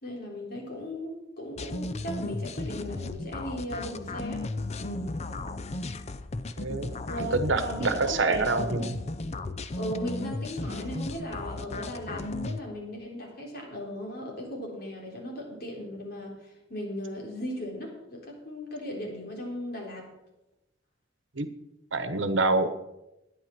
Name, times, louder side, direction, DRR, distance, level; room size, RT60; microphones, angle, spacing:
voice 1, 0.0-4.4 4.8-5.1 7.1-7.4 7.6-8.9 9.7-20.1, equal, 55° left, -1 dB, 3.8 m, -37 dB
sound 1, 1.6-12.6, left 2 dB, 35° left, 0.6 m, -35 dB
voice 2, 6.6-8.9 21.4-21.5 21.9-22.7, right 3 dB, 70° right, 10 dB, 1.1 m, -26 dB
11.5 x 9.8 x 6.1 m, 0.94 s
head